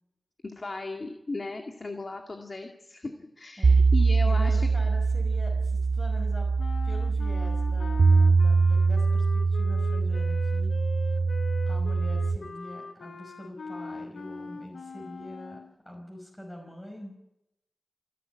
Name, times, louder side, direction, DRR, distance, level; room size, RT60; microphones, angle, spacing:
voice 1, 0.4-4.7, left 3 dB, 40° left, 4 dB, 2.1 m, -36 dB
sound 1, 3.6-12.4, right 4 dB, 65° right, 1.9 m, -23 dB
voice 2, 4.3-6.5 6.8-10.7 11.7-17.2, left 1 dB, 15° left, 0 dB, 5.5 m, -44 dB
sound 2, 6.6-15.7, left 4 dB, 85° left, 1.4 m, -41 dB
28.0 x 11.5 x 9.4 m, 0.87 s
wide cardioid pair, 95°, 0 cm